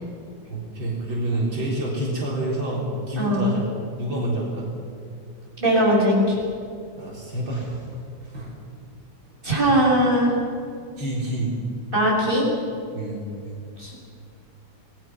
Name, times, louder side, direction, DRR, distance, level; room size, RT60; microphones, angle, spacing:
voice 1, 0.5-3.7 4.0-4.7 7.0-7.9 8.2-8.5 9.2-9.4 11.0-11.5 12.9-13.2, right 1 dB, 75° right, -4 dB, 4.7 m, -28 dB
voice 2, 3.2-3.5 5.6-6.4 9.4-10.3 11.9-12.5 13.8-13.9, equal, 25° right, -5 dB, 8.0 m, -20 dB
28.0 x 20.0 x 6.1 m, 2.4 s
omnidirectional pair, 2.1 m